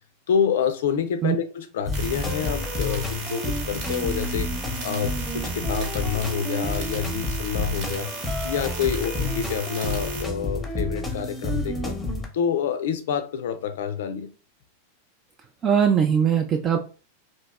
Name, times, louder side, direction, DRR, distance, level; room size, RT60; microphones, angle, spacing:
voice 1, 0.3-8.1 8.4-12.0 12.3-14.3, left 7 dB, 60° left, 0.4 m, -27 dB
sound 1, 1.9-12.3, left 1 dB, 10° left, 0.8 m, -30 dB
sound 2, 1.9-10.2, right 4 dB, 45° right, 1.0 m, -36 dB
voice 2, 15.6-16.8, right 8 dB, 25° right, 0.4 m, -20 dB
2.9 x 2.7 x 3.3 m
figure-of-eight pair, 90°, 0 cm